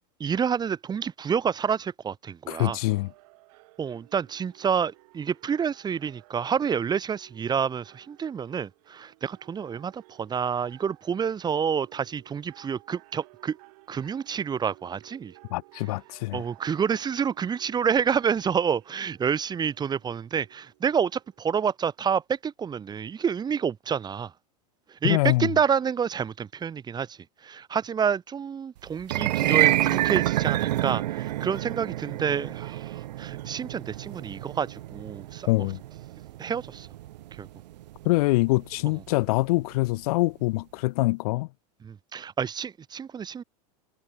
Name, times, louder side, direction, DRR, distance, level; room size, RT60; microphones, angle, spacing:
voice 1, 0.2-2.8 3.8-13.6 13.9-15.3 16.3-24.3 24.9-35.7 36.4-36.9 37.3-37.5 41.8-43.4, right 7 dB, 20° right, 2.3 m, -28 dB
voice 2, 2.5-3.1 15.5-16.4 25.0-25.5 35.5-35.8 38.0-41.5, left 21 dB, 65° left, 0.9 m, -24 dB
sound 1, 2.5-22.0, right 24 dB, 60° right, 7.7 m, -56 dB
sound 2, 29.0-39.3, right 15 dB, 90° right, 0.5 m, -28 dB
supercardioid pair, 130°, 21 cm